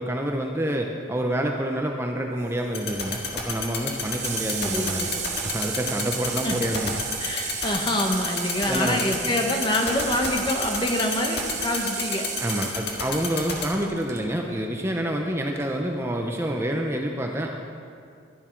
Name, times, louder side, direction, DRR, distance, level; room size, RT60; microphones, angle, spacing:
voice 1, 0.0-5.1 5.4-6.9 8.7-9.0 12.4-17.6, right 1 dB, 15° right, 2 dB, 0.6 m, -27 dB
Water tap faucet / Sink (filling or washing), 2.4-14.2 15.5-15.6, right 7 dB, 40° right, 1.0 m, -34 dB
sound 1, 2.7-13.6, left 6 dB, 65° left, 1.8 m, -28 dB
voice 2, 4.6-5.1 6.4-6.6 7.2-12.3, left 1 dB, 25° left, 2 dB, 1.1 m, -26 dB
12.0 x 11.0 x 4.5 m, 2.3 s
head